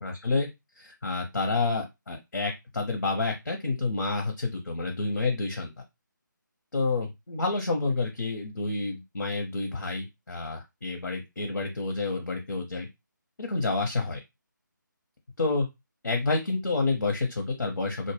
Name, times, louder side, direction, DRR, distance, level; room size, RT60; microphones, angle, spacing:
voice 1, 0.0-0.5 0.8-5.7 6.7-12.9 13.4-14.2 15.4-15.7 16.0-18.1, left 3 dB, 70° left, 2 dB, 0.7 m, -29 dB
2.1 x 2.1 x 3.2 m, 0.21 s
figure-of-eight pair, 155°, 11 cm